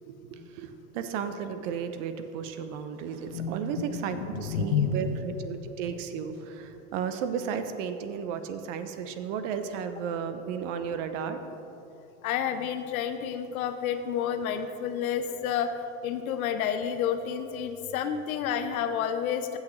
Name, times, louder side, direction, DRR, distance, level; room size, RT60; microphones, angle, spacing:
voice 1, 0.1-11.4, right 7 dB, 60° right, 9 dB, 0.9 m, -34 dB
voice 2, 3.9-5.1 5.6-5.7 12.2-15.7 16.0-19.6, left 8 dB, 75° left, 9 dB, 0.9 m, -30 dB
15.5 x 6.4 x 3.2 m, 2.9 s
hypercardioid pair, 100°, 43 cm